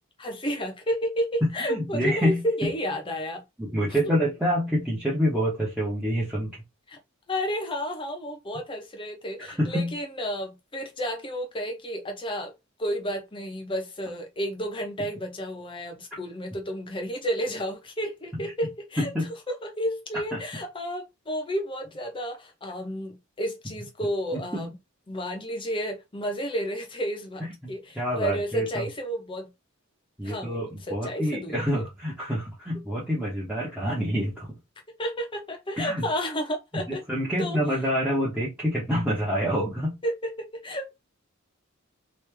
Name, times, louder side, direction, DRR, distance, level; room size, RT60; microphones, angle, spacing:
voice 1, 0.2-3.4 6.9-7.0 7.3-12.5 12.8-19.1 19.5-24.7 25.1-29.5 30.2-31.8 35.0-37.0 37.4-37.6 40.0-40.9, equal, 25° left, 0.9 m, -31 dB
voice 2, 1.4-2.7 3.6-6.5 9.4-9.9 19.0-19.3 20.3-20.4 24.3-24.7 27.6-28.9 30.2-34.6 35.8-36.0 36.7-39.9, equal, 5° right, 1.0 m, -27 dB
3.1 x 2.7 x 3.3 m
head